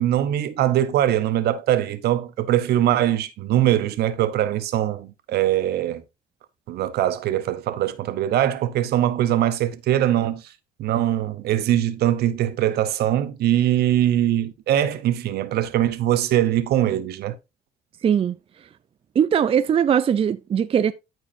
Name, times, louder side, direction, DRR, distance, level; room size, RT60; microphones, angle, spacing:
voice 1, 0.0-6.0 6.7-10.5 10.8-17.4, right 12 dB, 70° right, 1.0 m, -22 dB
voice 2, 18.0-18.4 19.1-20.9, right 8 dB, 35° right, 0.5 m, -20 dB
13.5 x 4.8 x 2.7 m
cardioid pair, 110°, 17 cm